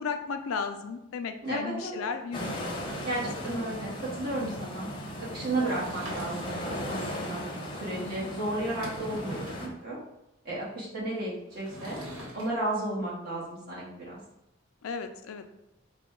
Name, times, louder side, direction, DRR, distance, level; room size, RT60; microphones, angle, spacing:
voice 1, 0.0-2.8 3.6-3.8 4.4-4.7 5.6-5.8 8.0-8.3 14.8-15.5, left 5 dB, 85° left, 7 dB, 0.4 m, -35 dB
voice 2, 1.4-2.0 3.0-4.9 5.3-7.4 7.8-10.0 10.4-12.0 12.3-14.2, right 1 dB, 45° right, -6 dB, 1.5 m, -33 dB
sound 1, 2.3-9.7, equal, 25° left, 0.7 m, -37 dB
Sliding door / Wood, 5.5-6.8 8.3-8.4 8.6-9.7 11.5-12.4, equal, 85° right, 1.3 m, -43 dB
4.8 x 2.2 x 3.6 m, 0.88 s
head